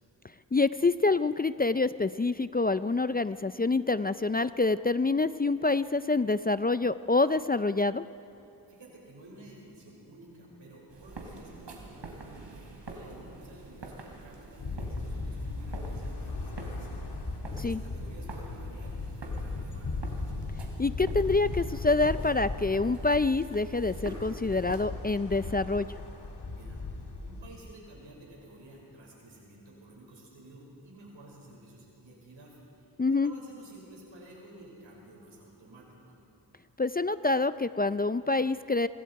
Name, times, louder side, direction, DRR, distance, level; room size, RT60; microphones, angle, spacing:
voice 1, 0.5-8.0 17.6-17.8 20.8-25.9 33.0-33.3 36.8-38.9, left 3 dB, 20° left, 13 dB, 0.4 m, -26 dB
voice 2, 8.7-19.9 26.5-26.8 27.2-36.1, right 1 dB, 85° right, -2 dB, 5.8 m, -52 dB
sound 1, 10.9-24.8, right 2 dB, 70° right, 3.2 m, -46 dB
sound 2, 14.6-27.5, left 3 dB, 60° left, 2.4 m, -37 dB
25.5 x 23.0 x 4.7 m, 3.0 s
cardioid pair, 60°, 44 cm